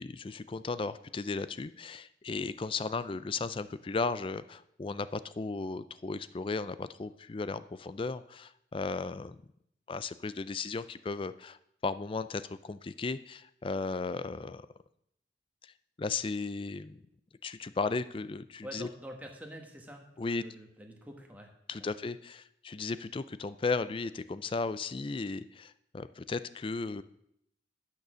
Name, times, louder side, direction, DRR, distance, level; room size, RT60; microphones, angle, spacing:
voice 1, 0.0-9.4 9.9-11.6 11.8-14.7 15.6-15.7 16.0-17.0 17.4-18.9 20.2-20.4 21.7-27.0, left 4 dB, 30° left, 14 dB, 0.4 m, -35 dB
voice 2, 18.6-21.5 21.7-21.9, equal, 10° right, 1 dB, 1.5 m, -46 dB
10.5 x 6.7 x 6.2 m, 0.76 s
head